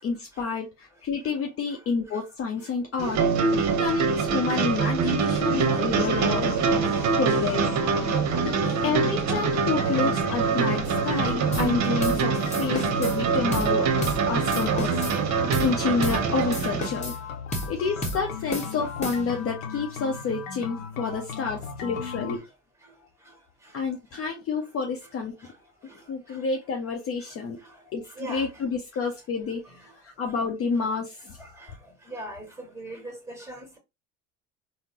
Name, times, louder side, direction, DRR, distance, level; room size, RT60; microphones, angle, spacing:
voice 1, 0.0-3.2 3.6-6.6 7.2-7.7 8.0-14.9 15.6-17.1 17.7-22.4 23.7-25.3 26.1-27.6 27.9-29.6 30.0-31.4, left 5 dB, 35° left, 0.7 m, -29 dB
sound 1, 3.0-16.9, right 5 dB, 45° right, 0.8 m, -24 dB
sound 2, 5.9-22.4, left 6 dB, 80° left, 0.7 m, -37 dB
voice 2, 7.0-7.5 14.8-15.0 19.7-19.8 28.2-28.4 31.4-31.5 32.1-33.8, right 2 dB, 5° right, 1.6 m, -40 dB
sound 3, 11.5-11.7 12.0-12.2 12.5-13.2 13.5-13.7 14.0-14.2 14.5-15.2 15.5-15.7 16.0-16.2 16.5-17.2 17.5-17.7 18.0-18.2 18.5-19.4, equal, 15° left, 1.2 m, -32 dB
3.6 x 2.1 x 2.8 m
hypercardioid pair, 70°, 40 cm